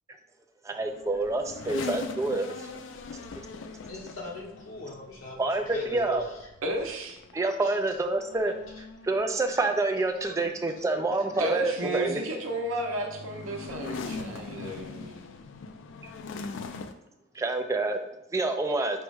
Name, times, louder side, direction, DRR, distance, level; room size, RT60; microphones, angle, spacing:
voice 1, 0.6-2.7 3.4-3.5 5.4-6.2 7.3-12.2 17.3-19.0, right 2 dB, 15° right, 5 dB, 0.3 m, -28 dB
sound 1, 0.9-16.9, left 4 dB, 65° left, 0.4 m, -42 dB
voice 2, 3.9-6.3 7.6-7.7 10.2-10.3 11.3-11.5, left 2 dB, 85° left, -3 dB, 1.1 m, -39 dB
voice 3, 6.6-7.2 11.4-15.2, right 1 dB, 85° right, 2 dB, 0.7 m, -33 dB
4.5 x 2.1 x 4.7 m, 0.88 s
head